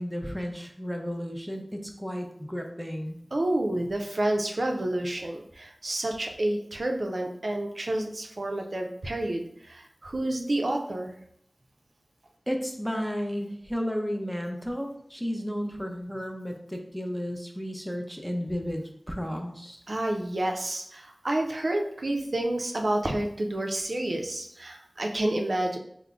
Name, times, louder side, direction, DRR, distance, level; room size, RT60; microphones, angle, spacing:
voice 1, 0.0-3.2 12.5-19.8, equal, ahead, 2 dB, 0.6 m, -33 dB
voice 2, 3.3-11.2 19.9-25.8, right 1 dB, 70° right, 2 dB, 0.4 m, -29 dB
3.6 x 2.0 x 3.4 m, 0.71 s
wide cardioid pair, 45°, 0 cm